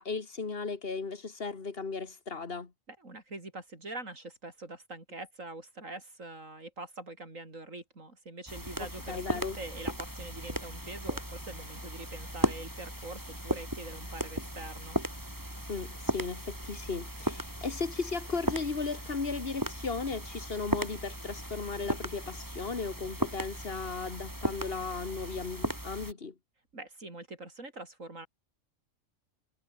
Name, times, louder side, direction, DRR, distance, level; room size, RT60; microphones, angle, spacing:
voice 1, 0.0-2.7 9.1-9.6 15.7-26.3, left 4 dB, 50° left, 2.1 m, -36 dB
voice 2, 2.9-15.0 26.7-28.3, right 2 dB, 85° right, 5.6 m, -44 dB
sound 1, 8.5-26.1, right 1 dB, 15° right, 5.5 m, -36 dB
omnidirectional pair, 1.3 m